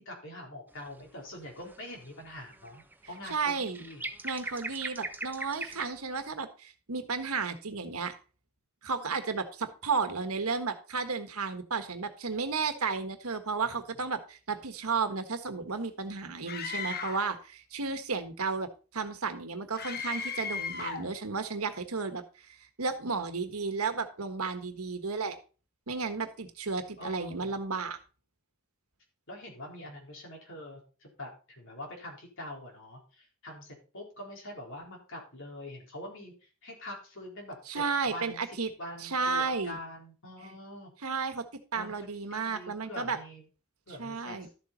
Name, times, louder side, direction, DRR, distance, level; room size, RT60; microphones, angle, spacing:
voice 1, 0.0-4.0 27.0-27.5 29.3-40.9 41.7-43.5 43.9-44.5, left 1 dB, 60° left, 0 dB, 4.1 m, -44 dB
sound 1, 0.7-1.1 1.4-6.3, right 2 dB, 10° right, 0.8 m, -41 dB
voice 2, 3.3-3.8 4.2-8.1 8.8-18.7 18.9-22.2 22.8-25.3 25.9-28.0 37.7-38.7 39.0-39.8 41.0-41.4 41.7-43.2 44.0-44.5, right 4 dB, 85° right, 8 dB, 1.5 m, -33 dB
Screaming, 16.5-17.3 19.8-21.1, left 5 dB, 45° left, 1.3 m, -36 dB
12.5 x 7.3 x 4.0 m, 0.36 s
head